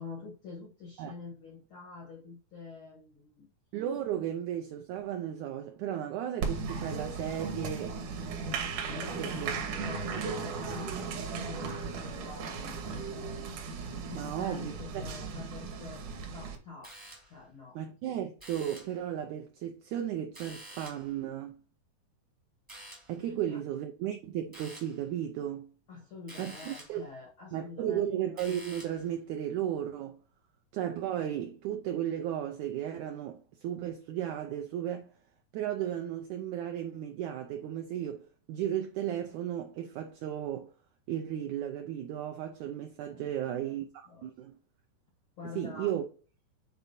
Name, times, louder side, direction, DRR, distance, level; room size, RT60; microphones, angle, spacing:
voice 1, 0.0-3.5 8.6-13.4 14.1-16.0 16.3-17.0 17.2-17.8 23.2-23.6 25.9-28.1 43.1-43.7 44.1-44.3 45.4-45.9, left 4 dB, 85° left, 1.1 m, -46 dB
voice 2, 3.7-8.0 9.2-9.5 10.0-10.1 14.1-14.7 17.7-21.6 23.1-25.7 26.4-27.0 27.5-30.2 30.7-35.1 35.5-40.7 41.1-44.6 45.5-46.0, right 10 dB, 85° right, 1.7 m, -35 dB
Applause, 6.4-16.6, right 5 dB, 70° right, 2.5 m, -36 dB
sound 1, 16.8-17.5 18.4-19.1 20.3-21.2 22.7-23.2 24.5-25.0 26.3-27.1 28.4-29.1, right 1 dB, 15° right, 0.6 m, -49 dB
9.2 x 4.0 x 2.7 m
omnidirectional pair, 4.1 m